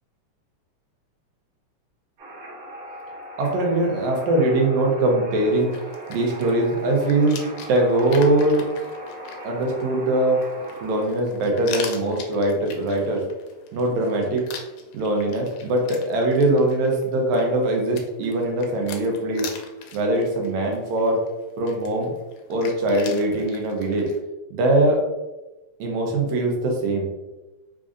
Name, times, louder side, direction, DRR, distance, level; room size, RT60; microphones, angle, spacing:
sound 1, 2.2-11.0, equal, 55° right, 1.7 m, -39 dB
voice 1, 3.4-5.7 6.1-7.4 7.7-8.7 9.4-10.4 10.8-13.2 13.7-14.4 14.9-19.5 19.9-21.2 21.6-22.1 22.5-24.1 24.5-25.0 25.8-27.1, right 1 dB, 75° right, 0 dB, 2.0 m, -21 dB
sound 2, 5.3-24.2, left 6 dB, 80° left, 1.9 m, -41 dB
5.0 x 2.5 x 2.4 m, 1.0 s
omnidirectional pair, 3.5 m